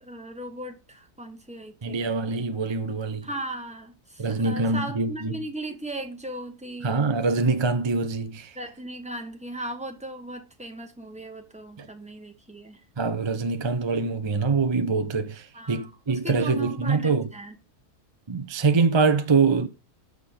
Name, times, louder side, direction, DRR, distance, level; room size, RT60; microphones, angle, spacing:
voice 1, 0.0-2.0 3.2-6.9 8.5-12.8 15.5-17.6, right 1 dB, 5° right, 1.2 m, -37 dB
voice 2, 1.8-3.3 4.2-5.4 6.8-8.6 11.8-11.9 13.0-17.3 18.3-19.7, right 4 dB, 35° right, 0.4 m, -24 dB
6.4 x 5.5 x 6.6 m
omnidirectional pair, 1.6 m